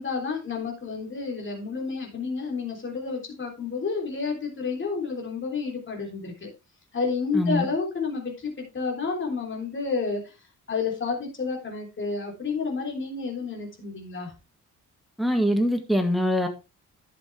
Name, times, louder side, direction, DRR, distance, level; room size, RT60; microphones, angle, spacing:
voice 1, 0.0-6.5 6.9-10.2 10.7-14.3, left 4 dB, 35° left, 3.4 m, -30 dB
voice 2, 7.3-7.7 15.2-16.5, equal, ahead, 1.7 m, -23 dB
11.0 x 7.4 x 3.4 m
cardioid pair, 130°, 33 cm